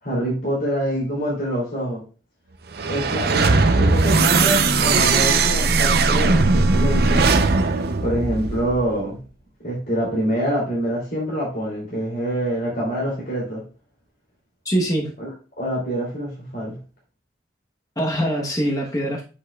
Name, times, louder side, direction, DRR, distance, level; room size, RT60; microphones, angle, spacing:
voice 1, 0.0-2.0 2.8-7.3 8.0-9.2 9.6-13.6 15.2-15.3 15.6-16.8, equal, 50° left, -5 dB, 2.8 m, -25 dB
sound 1, 2.7-9.0, right 3 dB, 55° right, 0.6 m, -18 dB
voice 2, 14.6-15.1 18.0-19.2, right 1 dB, 20° left, 0 dB, 1.0 m, -23 dB
8.6 x 5.3 x 2.3 m, 0.34 s
head